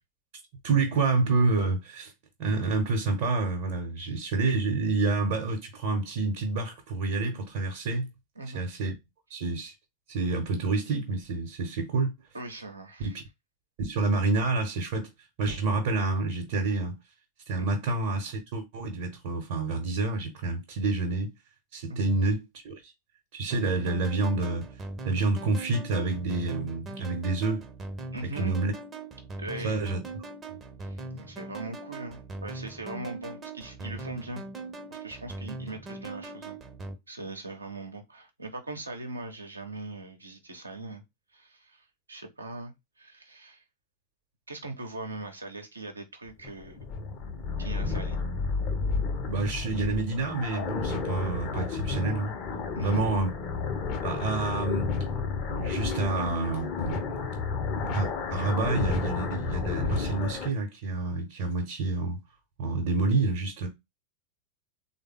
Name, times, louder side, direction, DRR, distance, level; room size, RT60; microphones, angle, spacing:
voice 1, 0.6-2.1 2.4-8.1 8.5-8.9 9.3-9.7 10.1-12.1 13.0-13.2 13.8-15.1 15.4-16.9 17.5-21.3 21.7-22.9 23.3-24.7 25.0-27.6 28.4-28.7 29.6-30.0 30.5-30.6 49.3-52.3 52.8-53.3 54.0-54.9 55.5-57.2 57.8-62.2 62.6-63.7, right 3 dB, 50° right, 0.9 m, -28 dB
voice 2, 8.4-8.7 12.3-13.2 17.6-17.8 21.9-22.2 28.1-28.6 29.4-29.8 30.8-34.4 34.9-36.6 37.1-41.0 41.3-43.6 44.5-46.9 47.5-48.2 52.7-53.1, right 2 dB, 80° right, 0.8 m, -40 dB
sound 1, 23.5-37.0, right 2 dB, 20° right, 0.7 m, -40 dB
sound 2, 46.3-60.5, left 4 dB, 40° left, 0.6 m, -31 dB
3.4 x 2.1 x 3.6 m
figure-of-eight pair, 90°, 0 cm